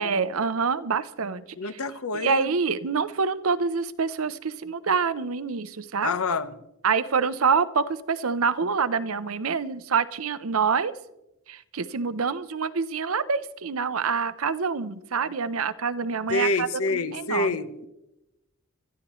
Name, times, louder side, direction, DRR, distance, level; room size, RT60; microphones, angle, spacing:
voice 1, 0.0-1.8 2.1-6.2 6.8-10.9 11.5-17.6, right 5 dB, 80° right, 14 dB, 0.7 m, -26 dB
voice 2, 1.6-2.5 6.0-6.5 16.3-17.9, left 3 dB, 90° left, 12 dB, 1.0 m, -27 dB
26.0 x 13.0 x 3.1 m, 0.93 s
head